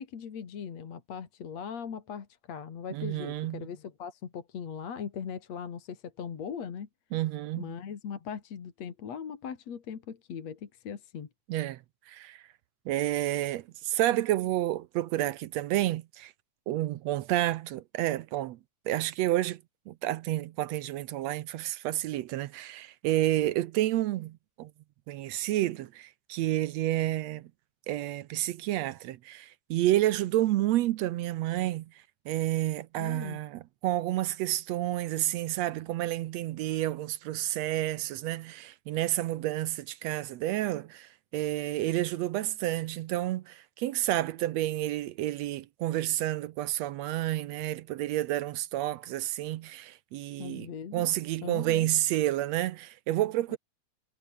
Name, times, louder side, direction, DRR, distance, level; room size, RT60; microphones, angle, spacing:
voice 1, 0.0-6.9 7.6-11.3 33.0-33.4 50.4-51.1 51.4-51.9 53.5-53.6, left 7 dB, 65° left, 3.5 m, -39 dB
voice 2, 2.9-3.7 7.1-7.7 11.5-11.8 12.1-12.4 12.9-16.3 16.7-18.6 18.9-19.6 19.9-24.7 25.1-27.5 27.9-31.9 32.3-53.6, right 14 dB, 75° right, 1.8 m, -30 dB
omnidirectional pair, 3.3 m